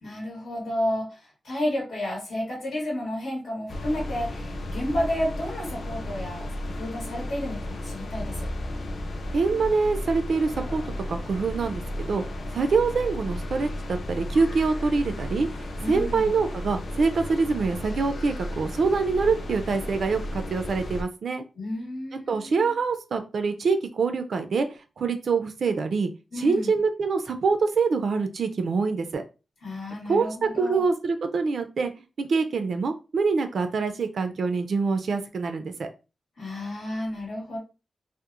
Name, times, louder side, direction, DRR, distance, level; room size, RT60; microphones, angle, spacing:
voice 1, 0.0-8.5 15.8-16.3 21.6-22.8 26.3-26.8 29.6-30.8 36.4-37.6, left 1 dB, 85° left, -3 dB, 1.0 m, -31 dB
sound 1, 3.7-21.0, left 1 dB, 50° left, 0.3 m, -34 dB
voice 2, 9.3-10.8 11.1-12.2 12.5-15.5 15.9-21.4 22.3-24.7 25.0-26.1 26.4-29.2 30.1-31.9 32.2-35.9, right 4 dB, 60° right, 7 dB, 0.3 m, -25 dB
2.8 x 2.0 x 2.3 m, 0.30 s
wide cardioid pair, 155°, 0 cm